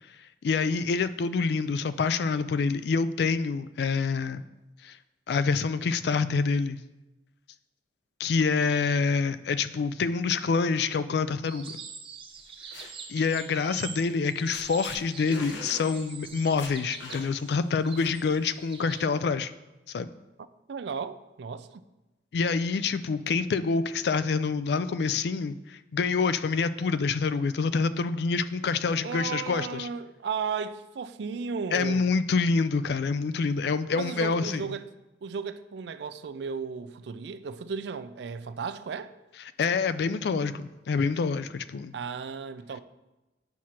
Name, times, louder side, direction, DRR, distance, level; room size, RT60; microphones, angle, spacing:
voice 1, 0.4-4.4 4.8-5.0 5.3-6.8 8.2-11.8 13.1-19.5 19.9-20.1 22.3-29.9 31.7-34.6 39.6-41.9, left 4 dB, 65° left, 0.3 m, -27 dB
sound 1, 11.4-19.1, right 6 dB, 30° right, 0.6 m, -44 dB
sound 2, 12.4-12.9 14.1-14.3 14.5-15.0 15.3-15.9 16.2-16.3 16.6-17.5 18.0-18.4, left 3 dB, 80° left, 0.8 m, -41 dB
voice 2, 20.7-21.8 29.0-32.1 33.9-34.9 35.2-39.1 41.9-42.8, right 5 dB, 70° right, 0.4 m, -35 dB
9.2 x 6.1 x 2.9 m
head